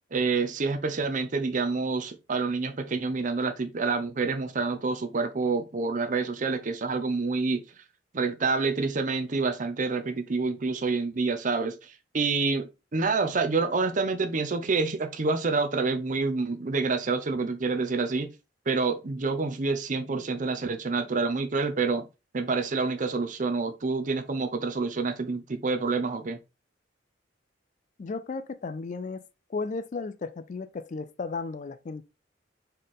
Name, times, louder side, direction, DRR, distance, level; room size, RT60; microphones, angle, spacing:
voice 1, 0.1-7.6 8.1-18.3 18.7-22.1 22.3-26.4, right 4 dB, 45° right, 0.6 m, -28 dB
voice 2, 28.0-29.2 29.5-32.0, left 4 dB, 40° left, 0.4 m, -34 dB
4.4 x 3.2 x 3.6 m
head